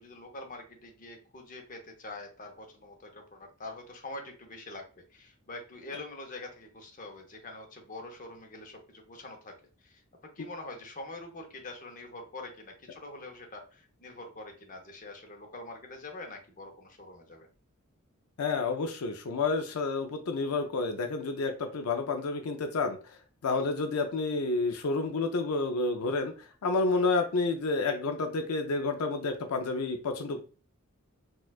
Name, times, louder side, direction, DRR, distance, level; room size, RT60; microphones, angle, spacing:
voice 1, 0.0-9.5 9.8-10.0 10.4-17.5 23.5-23.6 26.9-27.0, left 2 dB, 40° left, 3 dB, 0.7 m, -45 dB
voice 2, 18.4-26.3 26.6-30.4, left 3 dB, 85° left, 5 dB, 0.5 m, -30 dB
4.3 x 2.3 x 2.3 m, 0.35 s
head